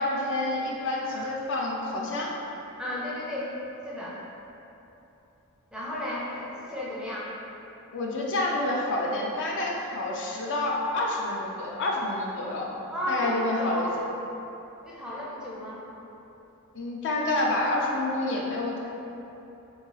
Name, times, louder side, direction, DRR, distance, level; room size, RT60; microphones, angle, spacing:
voice 1, 0.0-2.3 7.9-12.7 13.1-13.9 16.7-18.8, left 2 dB, 55° left, -2 dB, 0.4 m, -28 dB
voice 2, 2.8-3.5 3.8-4.2 5.7-7.3 12.9-13.9 14.8-15.8, left 1 dB, 5° right, -7 dB, 0.4 m, -33 dB
3.6 x 2.3 x 3.1 m, 3.0 s
head